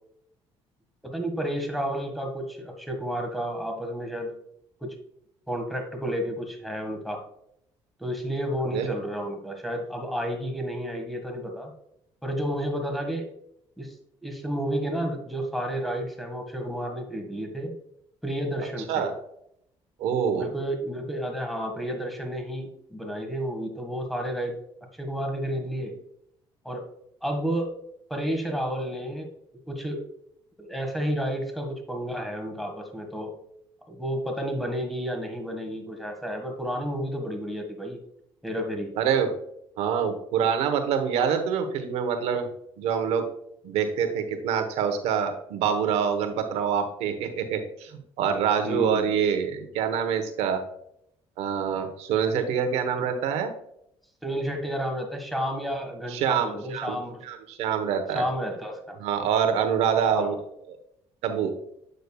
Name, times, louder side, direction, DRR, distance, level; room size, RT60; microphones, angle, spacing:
voice 1, 1.0-4.3 4.8-4.9 5.5-7.2 8.0-11.7 12.2-13.2 13.8-13.9 14.2-17.7 18.2-19.1 20.3-24.5 24.9-25.9 26.6-26.8 27.2-27.7 28.1-29.3 29.7-30.0 30.6-33.3 33.9-38.0 38.4-38.9 48.6-49.1 54.2-57.2 58.1-59.0 60.1-60.4, equal, ahead, 3 dB, 1.7 m, -31 dB
voice 2, 20.0-20.5 39.0-39.3 39.8-42.5 42.8-43.3 43.6-50.6 51.4-53.5 56.1-57.0 57.2-58.2 59.0-60.3 60.7-60.8 61.2-61.5, right 7 dB, 85° right, 7 dB, 1.0 m, -26 dB
8.1 x 6.5 x 2.3 m, 0.74 s
cardioid pair, 95°, 10 cm